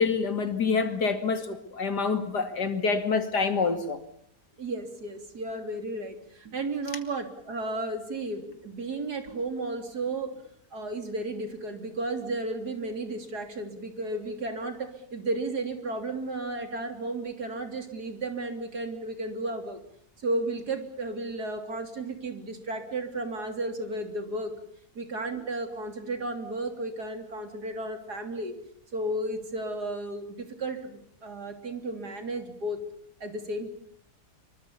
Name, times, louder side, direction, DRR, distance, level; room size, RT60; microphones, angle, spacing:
voice 1, 0.0-4.0, left 4 dB, 85° left, 3.1 m, -26 dB
voice 2, 4.6-10.5 10.7-19.8 20.2-24.5 25.0-28.5 28.9-32.8 33.2-33.7, right 2 dB, 75° right, 4.0 m, -33 dB
26.0 x 24.0 x 7.0 m
omnidirectional pair, 1.7 m